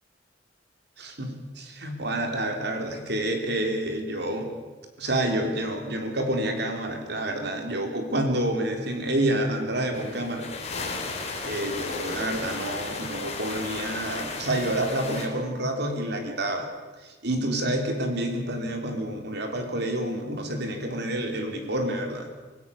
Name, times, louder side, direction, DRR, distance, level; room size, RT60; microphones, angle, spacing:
voice 1, 1.0-4.5 5.0-10.5 11.4-16.7 17.2-22.3, right 1 dB, 65° right, 4 dB, 3.5 m, -28 dB
sound 1, 9.9-15.3, left 3 dB, 35° left, 3.7 m, -34 dB
25.5 x 16.5 x 7.0 m, 1.3 s
head